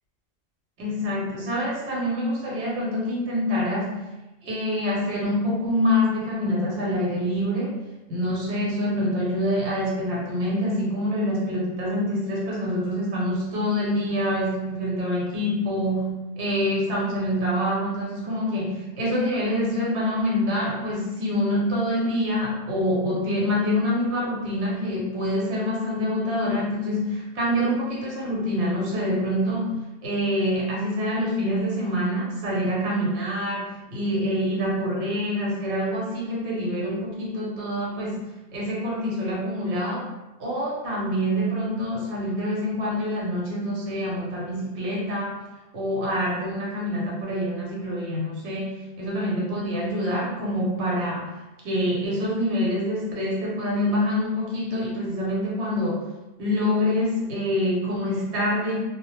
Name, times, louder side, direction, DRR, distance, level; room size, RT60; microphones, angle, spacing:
voice 1, 0.8-4.0 4.4-7.8 8.1-40.1 40.4-45.4 45.7-51.3 51.6-56.1 56.4-58.8, left 1 dB, 85° right, -4 dB, 1.0 m, -26 dB
2.0 x 2.0 x 3.0 m, 1.0 s
omnidirectional pair, 1.1 m